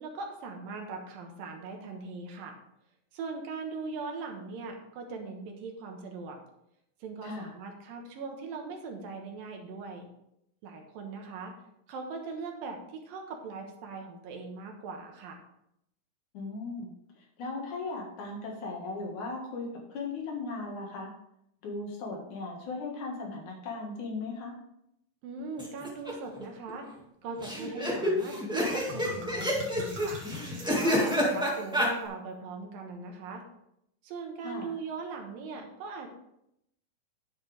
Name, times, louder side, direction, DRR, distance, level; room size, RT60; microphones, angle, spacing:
voice 1, 0.0-2.6 3.1-6.4 7.0-10.1 10.6-11.5 11.9-15.4 25.2-26.9 27.2-30.2 30.7-33.4 34.0-36.1, right 4 dB, 80° right, 3 dB, 3.0 m, -40 dB
voice 2, 7.2-7.5 16.3-16.9 17.4-21.1 21.6-24.6 34.4-34.7, left 3 dB, 60° left, 0 dB, 2.9 m, -37 dB
sound 1, 25.6-26.1 26.4-26.5 26.7-26.8 27.4-31.9, equal, 5° right, 0.7 m, -28 dB
sound 2, 28.3-28.4 28.7-31.7, left 1 dB, 35° right, 2.9 m, -42 dB
9.9 x 8.0 x 3.4 m, 0.78 s
omnidirectional pair, 4.0 m